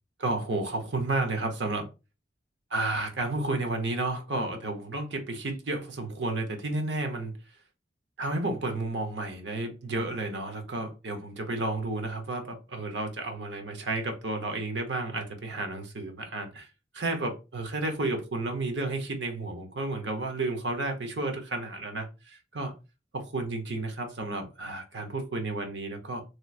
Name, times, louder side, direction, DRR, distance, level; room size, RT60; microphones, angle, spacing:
voice 1, 0.2-1.9 2.7-7.3 8.2-16.7 16.9-22.7 23.1-26.2, right 2 dB, 75° right, 0.8 m, -32 dB
3.1 x 3.0 x 2.3 m
head